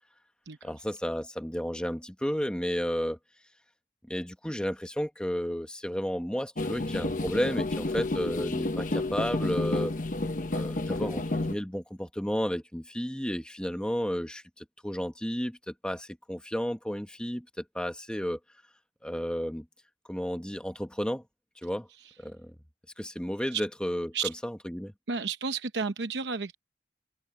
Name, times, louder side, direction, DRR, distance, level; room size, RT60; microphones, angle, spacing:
voice 1, 0.6-3.2 4.1-9.9 10.5-18.4 19.0-19.6 20.1-21.2 21.6-21.9 22.2-22.5 23.0-24.1 24.4-24.9, equal, 5° left, 1.3 m, -32 dB
sound 1, 6.6-11.6, left 2 dB, 45° left, 1.0 m, -30 dB
voice 2, 25.1-26.5, right 5 dB, 85° right, 0.8 m, -32 dB
open air
head